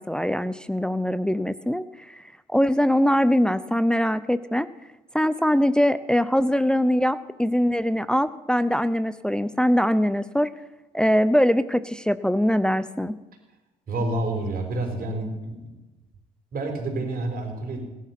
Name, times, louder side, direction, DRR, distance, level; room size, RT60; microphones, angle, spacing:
voice 1, 0.1-2.2 2.5-4.7 5.1-10.5 10.9-13.2, equal, 5° left, 13 dB, 0.7 m, -22 dB
voice 2, 13.9-15.7 16.5-17.8, right 2 dB, 55° right, 4 dB, 4.5 m, -28 dB
18.0 x 11.5 x 5.9 m, 1.1 s
supercardioid pair, 70°, 18 cm